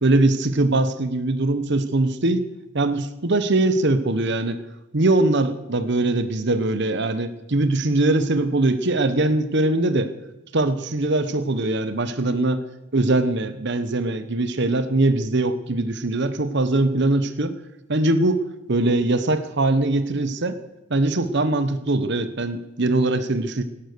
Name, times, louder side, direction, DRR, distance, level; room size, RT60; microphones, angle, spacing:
voice 1, 0.0-2.4 2.7-4.6 4.9-10.1 10.5-12.6 12.9-17.6 17.9-20.6 20.9-23.6, right 2 dB, 55° right, 12 dB, 1.0 m, -21 dB
17.5 x 11.5 x 6.8 m, 0.95 s
head